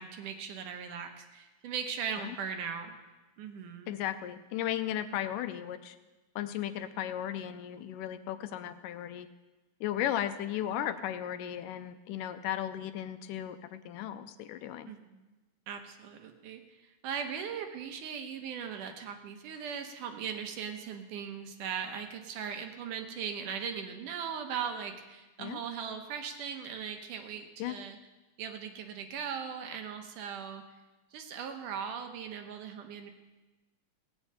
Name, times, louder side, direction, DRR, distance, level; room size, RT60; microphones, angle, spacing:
voice 1, 0.0-3.0 3.4-4.0 14.9-15.3 15.7-28.0 28.4-30.6 31.1-33.1, right 7 dB, 75° right, 5 dB, 2.5 m, -39 dB
voice 2, 3.9-6.0 6.4-9.3 9.8-14.9 25.4-25.6 27.6-27.8, left 11 dB, 80° left, 10 dB, 2.2 m, -35 dB
17.0 x 6.7 x 8.8 m, 1.2 s
omnidirectional pair, 3.8 m